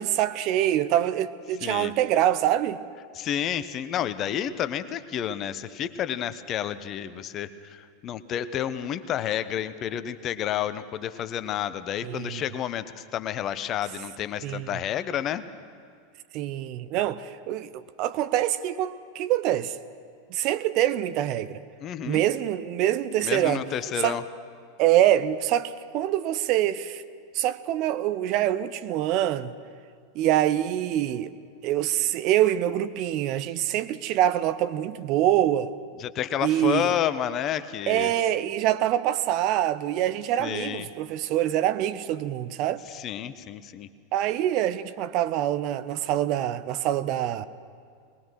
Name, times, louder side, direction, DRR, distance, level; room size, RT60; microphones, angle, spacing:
voice 1, 0.0-2.8 12.0-12.4 14.4-14.8 16.3-17.7 18.0-19.8 20.3-21.6 22.1-23.6 24.0-24.2 24.8-27.0 27.3-29.5 30.1-31.3 31.6-35.7 36.4-37.0 37.9-42.8 44.1-47.5, right 12 dB, 45° right, 0.7 m, -25 dB
voice 2, 1.6-1.9 3.1-15.4 21.8-22.2 23.2-24.2 36.0-38.1 40.4-40.9 42.9-43.9, left 10 dB, 35° left, 0.9 m, -30 dB
21.5 x 20.0 x 6.2 m
figure-of-eight pair, 85°, 0 cm